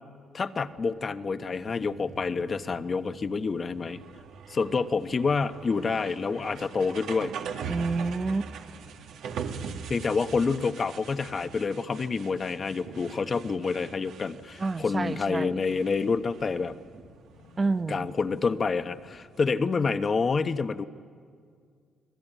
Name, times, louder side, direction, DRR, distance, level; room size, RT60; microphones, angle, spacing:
voice 1, 0.3-4.0 4.5-7.3 9.9-16.8 17.9-20.9, left 4 dB, 40° left, 11 dB, 1.1 m, -28 dB
sound 1, 0.7-10.5 10.8-12.3 12.7-14.0 14.5-14.6 15.0-20.1, left 4 dB, 90° left, 4.8 m, -57 dB
sound 2, 1.7-19.6, right 6 dB, 80° right, 2.0 m, -42 dB
voice 2, 7.7-8.5 14.6-15.6 17.6-18.1, right 3 dB, 30° right, 14 dB, 0.8 m, -29 dB
29.5 x 20.0 x 9.2 m, 2.1 s
cardioid pair, 90°, 0 cm